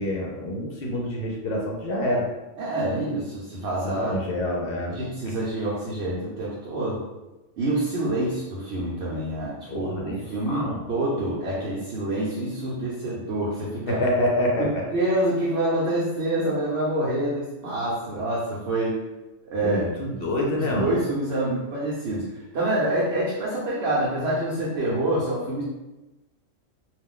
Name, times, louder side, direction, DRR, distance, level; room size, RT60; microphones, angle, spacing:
voice 1, 0.0-2.3 4.1-4.9 9.7-10.2 10.5-10.8 13.9-14.8 19.6-21.0, left 1 dB, 60° left, -1 dB, 0.7 m, -26 dB
voice 2, 2.6-4.2 4.9-7.0 7.6-14.0 14.6-19.0 19.5-19.8 20.6-22.3 22.5-25.6, right 1 dB, 60° right, -7 dB, 0.9 m, -26 dB
2.4 x 2.1 x 3.7 m, 1.1 s
omnidirectional pair, 1.3 m